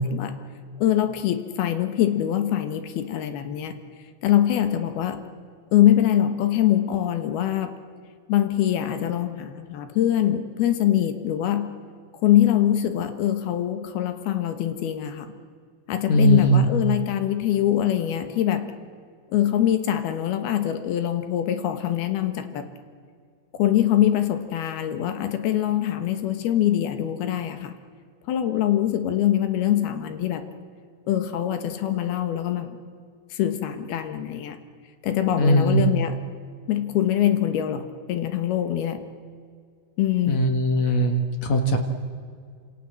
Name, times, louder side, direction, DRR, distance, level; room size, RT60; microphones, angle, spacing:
voice 1, 0.8-3.8 4.2-5.2 5.7-7.7 8.3-11.7 12.2-15.3 15.9-18.7 19.3-22.7 23.5-27.7 28.3-30.4 31.1-32.7 33.3-34.6 35.0-36.2 36.7-39.0 40.0-40.4, left 11 dB, 75° left, 8 dB, 3.3 m, -23 dB
voice 2, 16.1-16.7 35.4-35.8 40.3-41.8, right 1 dB, 50° left, 5 dB, 2.5 m, -20 dB
28.0 x 27.0 x 7.7 m, 2.1 s
omnidirectional pair, 4.6 m